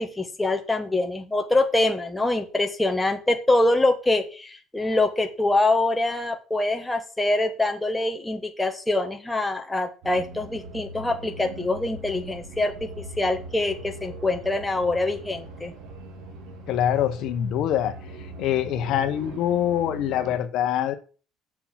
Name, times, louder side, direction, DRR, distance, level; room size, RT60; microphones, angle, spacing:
voice 1, 0.0-12.9 13.2-15.7, left 2 dB, 10° left, 4 dB, 1.3 m, -24 dB
sound 1, 10.0-20.4, right 1 dB, 90° right, 2.7 m, -40 dB
voice 2, 16.7-18.0 18.4-20.9, left 10 dB, 60° left, 8 dB, 1.1 m, -24 dB
7.2 x 6.9 x 7.3 m, 0.37 s
cardioid pair, 150°, 0 cm